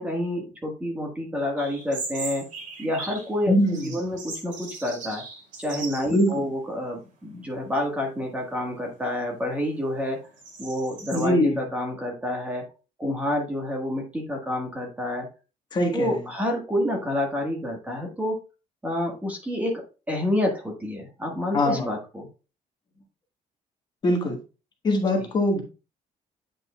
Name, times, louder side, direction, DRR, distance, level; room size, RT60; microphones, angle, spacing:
voice 1, 0.0-2.4 2.8-5.2 5.6-10.2 10.6-12.6 13.0-15.3 15.9-18.3 18.8-19.8 20.1-22.3, left 1 dB, 10° right, 1 dB, 1.4 m, -28 dB
sound 1, 1.6-3.3 3.7-6.4 6.7-6.8 7.6-8.0 8.4-11.2, right 3 dB, 65° right, 2.5 m, -39 dB
voice 2, 3.5-3.9 6.1-6.5 11.1-11.6 15.7-16.1 21.5-21.9 24.0-24.4 24.8-25.6, left 1 dB, 30° left, 2 dB, 1.3 m, -22 dB
8.8 x 5.3 x 2.2 m, 0.31 s
cardioid pair, 175°, 14 cm